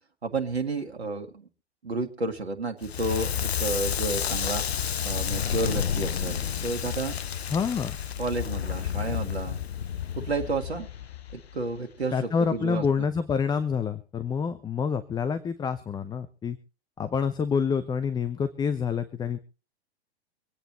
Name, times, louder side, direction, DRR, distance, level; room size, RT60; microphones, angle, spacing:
voice 1, 0.2-1.3 1.8-4.6 5.0-7.1 8.2-9.6 10.2-10.9 11.3-13.1, right 3 dB, 80° right, 3 dB, 1.8 m, -31 dB
Crackle, 2.8-11.8, left 8 dB, 75° left, 0.7 m, -30 dB
voice 2, 7.5-8.0 12.1-16.6 17.0-19.4, left 6 dB, 15° left, 11 dB, 0.8 m, -27 dB
25.0 x 9.1 x 3.1 m, 0.35 s
figure-of-eight pair, 105°, 32 cm